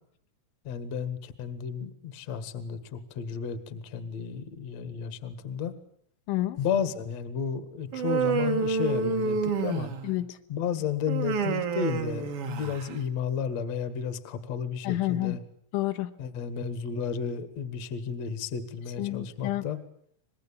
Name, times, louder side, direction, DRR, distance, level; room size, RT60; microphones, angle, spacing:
voice 1, 0.6-5.7 6.6-9.9 10.5-15.4 16.2-19.8, left 7 dB, 55° left, 12 dB, 2.0 m, -32 dB
voice 2, 6.3-6.6 10.0-10.4 14.8-15.4 15.7-16.1 19.0-19.7, left 15 dB, 80° left, 6 dB, 3.6 m, -29 dB
Human voice, 7.9-10.2 11.1-12.9, right 5 dB, 80° right, 1.2 m, -28 dB
26.0 x 21.0 x 8.6 m, 0.64 s
omnidirectional pair, 5.6 m